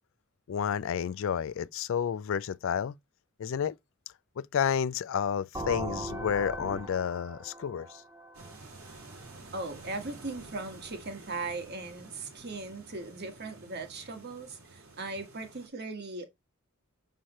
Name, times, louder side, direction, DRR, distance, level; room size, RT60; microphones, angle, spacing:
voice 1, 0.5-2.9 3.4-3.7 4.4-8.0, left 8 dB, 65° left, 0.3 m, -30 dB
sound 1, 5.5-9.3, right 1 dB, 15° right, 1.2 m, -39 dB
sound 2, 8.3-15.7, right 3 dB, 80° right, 2.6 m, -50 dB
voice 2, 9.5-16.3, right 3 dB, 50° right, 1.4 m, -38 dB
6.4 x 5.7 x 3.0 m
head